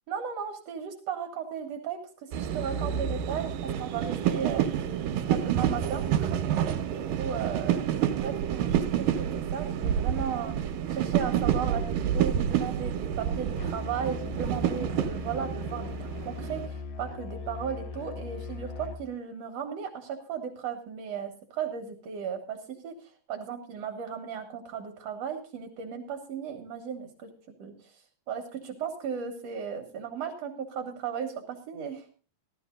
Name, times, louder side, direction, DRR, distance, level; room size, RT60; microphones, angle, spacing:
voice 1, 0.1-6.4 6.8-27.3 27.6-27.9 28.3-32.1, right 7 dB, 55° right, 4 dB, 2.2 m, -36 dB
sound 1, 2.3-16.7, right 9 dB, 80° right, 2.6 m, -29 dB
Musical instrument, 13.6-19.1, left 4 dB, 60° left, 2.1 m, -39 dB
15.0 x 12.5 x 3.8 m, 0.38 s
omnidirectional pair, 4.0 m